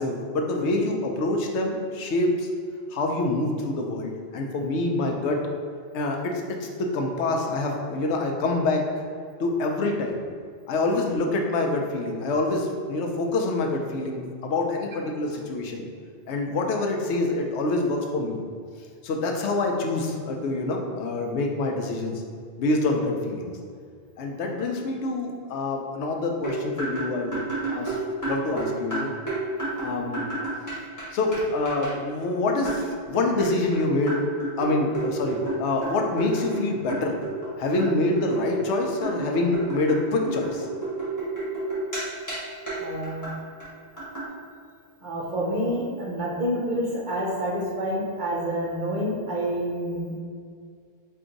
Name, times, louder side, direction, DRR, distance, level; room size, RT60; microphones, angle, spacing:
voice 1, 0.0-2.5 2.9-5.4 5.9-8.9 9.4-10.2 10.7-15.8 16.3-18.4 19.0-22.2 22.6-23.5 24.2-27.4 27.7-29.1 29.8-30.3 31.1-34.2 34.6-37.2 37.6-40.7, left 2 dB, 85° left, 2 dB, 0.9 m, -26 dB
sound 1, 26.4-31.0 31.3-31.4 31.7-31.9 32.6-32.9 33.4-36.6 36.9-37.5 37.8-42.0 42.3-42.4 42.7-42.8 43.0-43.3 43.6-43.7 44.0-44.3, right 2 dB, 15° left, 1.4 m, -31 dB
voice 2, 42.8-43.3 45.0-50.2, equal, 50° right, -3 dB, 0.9 m, -28 dB
4.6 x 2.5 x 3.8 m, 2.1 s
omnidirectional pair, 1.1 m